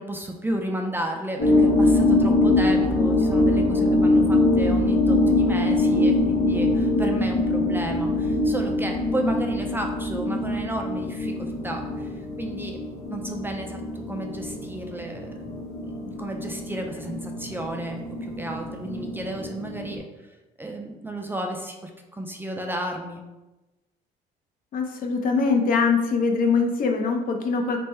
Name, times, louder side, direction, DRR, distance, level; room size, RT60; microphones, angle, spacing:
voice 1, 0.0-12.8 13.1-15.3 15.9-20.0 20.6-23.2, right 1 dB, 10° right, 2 dB, 0.4 m, -33 dB
sound 1, 1.4-20.0, left 2 dB, 85° left, 1.2 m, -23 dB
voice 2, 24.7-27.8, left 4 dB, 55° left, 4 dB, 0.6 m, -22 dB
3.4 x 2.1 x 4.3 m, 1.1 s
cardioid pair, 110°, 17 cm